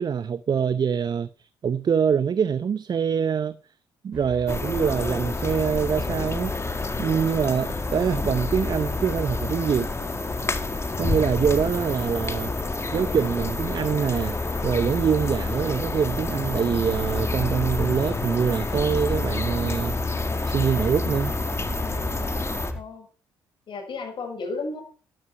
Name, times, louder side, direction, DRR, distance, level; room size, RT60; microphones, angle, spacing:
voice 1, 0.0-3.6 4.0-9.9 11.0-12.5 12.9-14.4 14.6-20.2 20.5-21.4, right 7 dB, 45° right, 0.6 m, -24 dB
Truck, 4.1-22.8, left 2 dB, 5° right, 3.3 m, -34 dB
sound 1, 4.5-22.7, left 3 dB, 25° left, 1.9 m, -29 dB
voice 2, 22.7-23.1 23.7-24.8, left 3 dB, 55° left, 6.2 m, -34 dB
11.5 x 11.0 x 5.8 m
hypercardioid pair, 50°, 10 cm